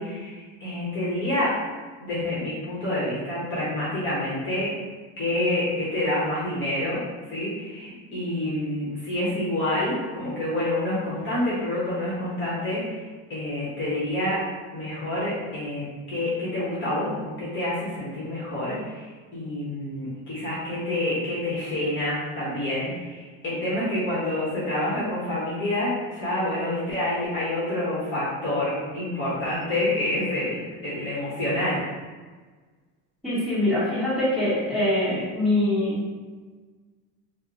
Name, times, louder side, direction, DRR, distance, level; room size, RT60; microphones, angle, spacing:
voice 1, 0.0-1.5 2.0-4.7 5.2-7.0 7.3-13.0 13.3-14.4 14.7-31.8, left 1 dB, 35° left, -8 dB, 0.9 m, -28 dB
voice 2, 33.2-36.0, left 1 dB, ahead, -12 dB, 1.3 m, -23 dB
2.8 x 2.0 x 3.7 m, 1.4 s
cardioid pair, 150°, 35 cm